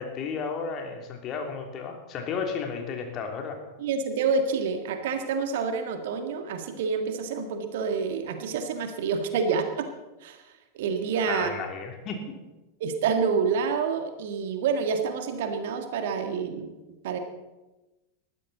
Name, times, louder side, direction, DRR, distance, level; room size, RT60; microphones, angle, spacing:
voice 1, 0.0-3.6 11.3-12.4, left 5 dB, 35° left, 3 dB, 3.0 m, -33 dB
voice 2, 3.8-9.9 10.2-11.5 12.8-16.7 17.0-17.2, right 5 dB, 55° right, 6 dB, 1.8 m, -28 dB
20.5 x 14.5 x 4.1 m, 1.1 s
figure-of-eight pair, 90°, 0 cm